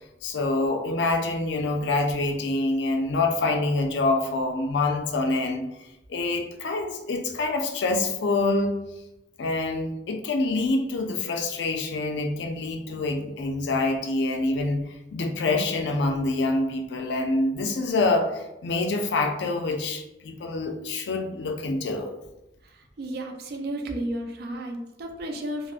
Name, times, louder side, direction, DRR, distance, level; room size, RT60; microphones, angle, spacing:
voice 1, 0.2-5.7 6.1-8.7 9.4-22.1, left 2 dB, 75° left, 4 dB, 0.4 m, -26 dB
voice 2, 23.0-25.7, right 1 dB, 60° right, 3 dB, 0.4 m, -32 dB
3.3 x 2.0 x 2.4 m, 0.92 s
head